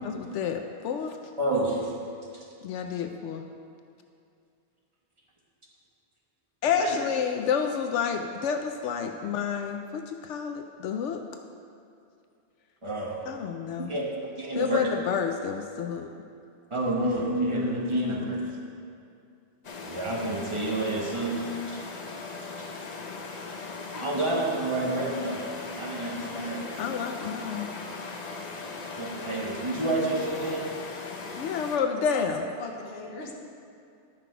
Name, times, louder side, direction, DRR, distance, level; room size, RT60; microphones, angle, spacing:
voice 1, 0.0-1.2 2.6-3.4 6.6-11.2 13.3-13.9 14.5-16.1 26.8-27.7 31.4-32.4, left 7 dB, 80° left, 5 dB, 0.9 m, -29 dB
voice 2, 1.4-1.9 6.8-7.0 12.8-13.2 13.8-14.1 14.4-14.9 16.7-18.5 19.8-21.8 22.6-22.7 24.0-25.4 25.8-26.7 29.0-30.7, right 1 dB, 25° right, -3 dB, 1.4 m, -29 dB
sound 1, 19.6-31.8, left 4 dB, 45° left, 0.7 m, -39 dB
voice 3, 32.1-33.3, left 3 dB, 60° left, -1 dB, 1.4 m, -39 dB
12.0 x 5.9 x 4.6 m, 2.5 s
omnidirectional pair, 1.2 m